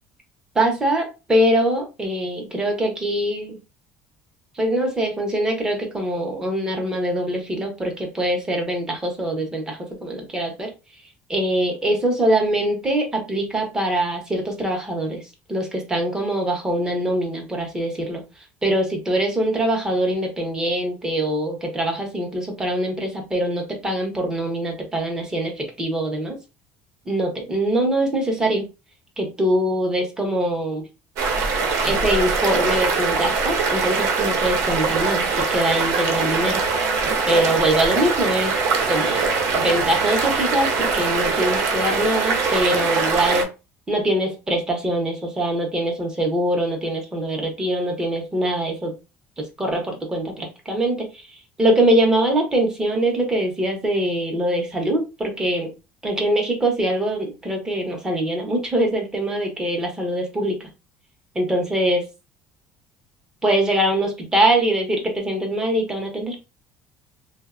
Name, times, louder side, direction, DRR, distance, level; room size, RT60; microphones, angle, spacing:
voice 1, 0.6-3.6 4.6-10.7 11.3-15.2 15.5-18.2 18.6-26.4 27.1-28.6 29.2-30.8 31.8-36.6 37.3-38.5 38.9-43.5 43.9-48.9 49.4-51.2 51.6-55.7 56.0-60.7 61.3-62.1 63.4-66.4, right 1 dB, 10° right, 2 dB, 0.6 m, -23 dB
sound 1, 31.2-43.4, right 4 dB, 60° right, 0.6 m, -22 dB
3.2 x 2.0 x 2.3 m, 0.28 s
cardioid pair, 175°, 6 cm